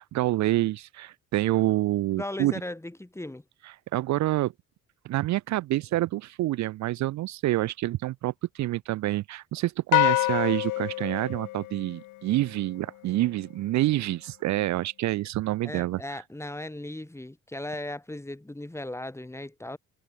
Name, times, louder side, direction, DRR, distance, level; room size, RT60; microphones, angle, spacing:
voice 1, 0.0-2.5 3.6-4.5 5.0-16.0, right 16 dB, 65° right, 0.5 m, -27 dB
voice 2, 2.1-3.4 15.6-19.8, left 1 dB, 10° left, 3.7 m, -37 dB
sound 1, 9.9-12.4, left 20 dB, 90° left, 0.5 m, -26 dB
cardioid pair, 90°, 30 cm